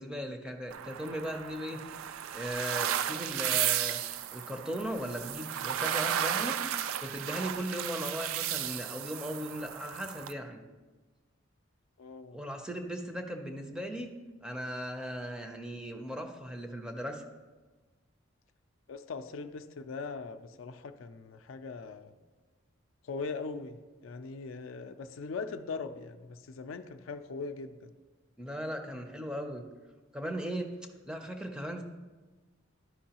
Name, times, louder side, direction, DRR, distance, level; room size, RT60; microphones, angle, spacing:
voice 1, 0.0-1.8 2.3-4.0 4.3-6.6 7.0-10.6 12.3-14.1 14.4-17.2 28.4-29.6 30.1-30.7 31.1-31.8, equal, 5° right, 4 dB, 0.4 m, -37 dB
Lake Superior Waves, 0.7-10.3, right 10 dB, 80° right, 0.3 m, -34 dB
voice 2, 12.0-12.4 18.9-22.1 23.0-27.9, left 4 dB, 75° left, 9 dB, 0.4 m, -40 dB
11.0 x 5.3 x 2.9 m, 1.3 s
head